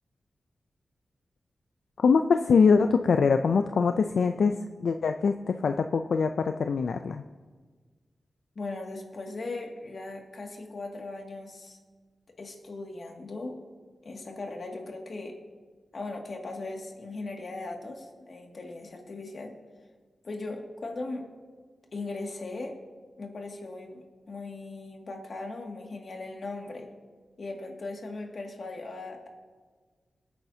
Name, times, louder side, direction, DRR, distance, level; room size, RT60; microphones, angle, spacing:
voice 1, 2.0-7.2, left 5 dB, 85° left, 7 dB, 0.4 m, -23 dB
voice 2, 8.6-11.8 12.4-13.6 14.0-15.4 15.9-19.5 20.2-21.3 21.9-22.8 23.2-26.9 27.4-29.3, left 2 dB, 60° left, 1 dB, 2.1 m, -38 dB
21.5 x 9.0 x 2.8 m, 1.5 s
wide cardioid pair, 75°, 0 cm